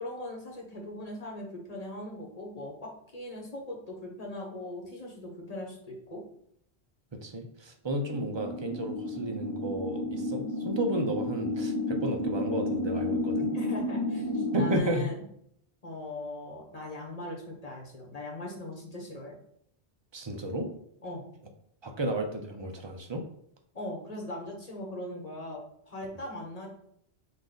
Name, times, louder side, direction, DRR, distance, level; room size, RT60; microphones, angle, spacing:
voice 1, 0.0-6.2 13.5-15.2 15.8-19.4 21.0-21.2 23.7-26.7, left 1 dB, 35° left, -1 dB, 1.2 m, -40 dB
voice 2, 7.2-13.5 14.5-15.1 20.1-20.7 21.8-23.2, right 1 dB, 35° right, 4 dB, 0.5 m, -32 dB
sound 1, 8.1-14.8, left 1 dB, 15° left, 0.8 m, -31 dB
5.6 x 2.5 x 3.8 m, 0.70 s
omnidirectional pair, 1.1 m